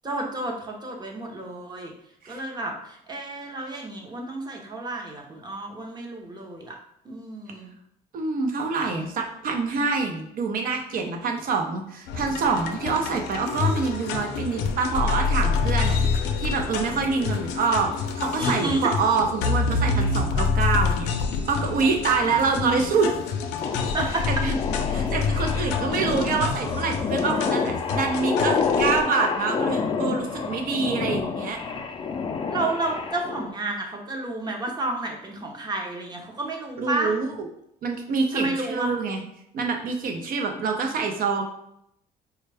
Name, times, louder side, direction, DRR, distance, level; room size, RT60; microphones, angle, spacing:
voice 1, 0.0-1.9 2.3-6.8 7.0-7.7 18.4-18.9 23.9-24.2 32.5-37.1 38.3-38.9, right 2 dB, 25° right, 1 dB, 0.8 m, -31 dB
voice 2, 8.1-17.9 18.2-21.1 21.4-23.1 24.3-24.6 24.9-31.6 36.8-37.5 37.8-39.2 39.5-41.4, right 4 dB, 60° right, 3 dB, 0.7 m, -26 dB
sound 1, 12.1-29.0, left 5 dB, 85° left, 0.5 m, -27 dB
sound 2, 23.6-33.5, left 5 dB, 30° left, 0.4 m, -28 dB
4.4 x 2.4 x 3.3 m, 0.75 s
cardioid pair, 110°, 17 cm